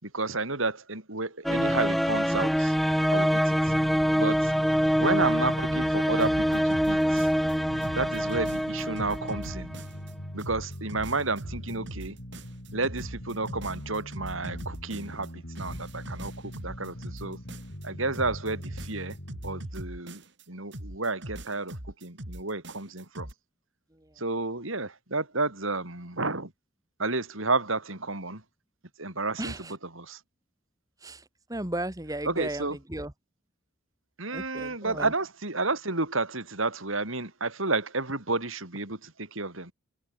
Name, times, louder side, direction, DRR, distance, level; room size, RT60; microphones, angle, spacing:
voice 1, 0.0-2.7 3.1-3.7 4.1-4.5 5.0-7.3 8.0-9.7 10.3-12.2 12.7-17.4 17.8-19.2 19.4-23.3 24.2-26.5 27.0-28.4 29.0-30.2 32.2-32.8 34.2-39.7, right 3 dB, 75° right, 4.7 m, -31 dB
sound 1, 1.4-9.8, equal, ahead, 1.4 m, -25 dB
sound 2, 3.7-19.7, equal, 55° left, 5.4 m, -42 dB
sound 3, 6.2-7.5 7.8-10.1 10.4-15.3 15.6-17.9 18.1-20.4 20.7-23.3, right 1 dB, 60° right, 5.9 m, -41 dB
voice 2, 29.4-29.7 31.0-31.2 31.5-33.1 34.3-35.1, right 1 dB, 15° right, 1.5 m, -35 dB
head